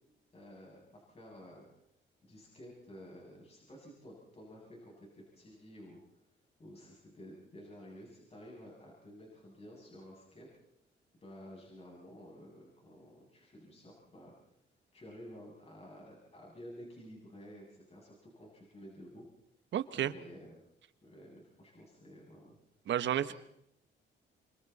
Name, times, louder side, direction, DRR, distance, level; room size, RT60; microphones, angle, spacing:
voice 1, 0.3-1.7 2.2-6.0 6.6-10.5 11.2-14.3 14.9-19.2 20.0-20.6 21.0-22.6 23.2-23.3, equal, 30° left, -3 dB, 7.6 m, -52 dB
voice 2, 19.7-20.1 22.9-23.3, right 10 dB, 65° right, 13 dB, 1.2 m, -31 dB
27.0 x 25.0 x 4.2 m, 0.76 s
cardioid pair, 90°, 20 cm